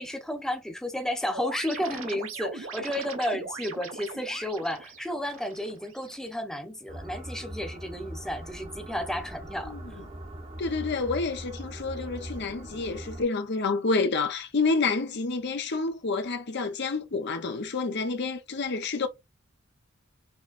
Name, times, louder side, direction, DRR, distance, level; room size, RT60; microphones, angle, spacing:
voice 1, 0.0-9.7, left 1 dB, 5° left, 0.9 m, -32 dB
sound 1, 1.3-6.3, right 4 dB, 85° right, 1.4 m, -40 dB
sound 2, 6.9-13.2, right 1 dB, 30° right, 1.0 m, -41 dB
voice 2, 10.6-19.1, left 3 dB, 60° left, 0.7 m, -29 dB
6.4 x 3.0 x 2.5 m
head